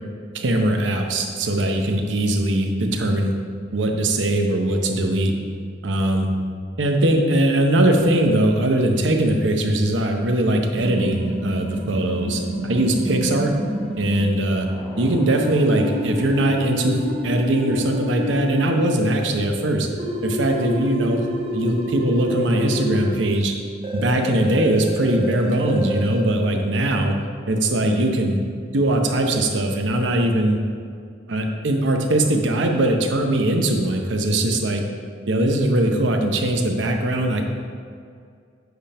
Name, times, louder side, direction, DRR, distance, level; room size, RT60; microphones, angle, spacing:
voice 1, 0.3-3.4 3.7-5.3 5.8-6.3 6.8-13.5 14.0-14.7 15.0-19.9 20.2-21.2 21.5-23.5 23.9-27.1 27.5-28.4 28.7-30.6 31.3-34.8 35.3-37.4, right 1 dB, 80° right, 3 dB, 0.8 m, -20 dB
sound 1, 10.8-14.3 15.3-18.8 20.0-23.1 23.8-26.2, equal, 30° right, 0.7 m, -28 dB
sound 2, 14.6-19.3, left 1 dB, 15° left, 0.6 m, -43 dB
8.0 x 3.4 x 5.5 m, 2.2 s
head